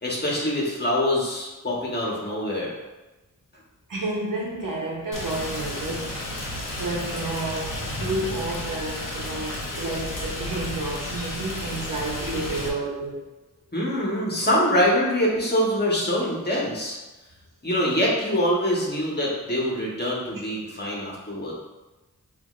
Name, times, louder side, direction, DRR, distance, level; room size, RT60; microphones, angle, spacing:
voice 1, 0.0-2.7 13.7-17.0 17.6-21.5, equal, 30° left, -4 dB, 1.3 m, -24 dB
voice 2, 3.9-6.3 6.6-13.3, right 2 dB, 75° right, -3 dB, 1.0 m, -30 dB
Rain, 5.1-12.7, left 1 dB, 75° left, 0.8 m, -32 dB
6.1 x 2.8 x 2.5 m, 1.1 s
wide cardioid pair, 80°, 33 cm